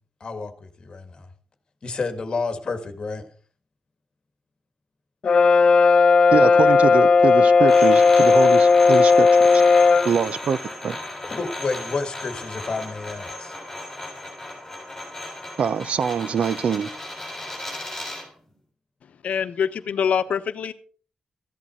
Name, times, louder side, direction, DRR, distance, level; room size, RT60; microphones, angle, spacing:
voice 1, 0.2-1.3 1.8-3.3 11.2-13.6, left 4 dB, 40° left, 1.9 m, -30 dB
Brass instrument, 5.2-10.1, left 4 dB, 55° left, 1.5 m, -15 dB
voice 2, 6.3-9.3 9.5-9.6 10.0-11.0 15.6-16.9, right 6 dB, 60° right, 0.5 m, -24 dB
sound 1, 7.7-18.3, left 2 dB, 10° left, 6.8 m, -35 dB
voice 3, 19.2-20.7, left 7 dB, 85° left, 0.9 m, -24 dB
15.0 x 11.0 x 4.5 m
wide cardioid pair, 175°, 2 cm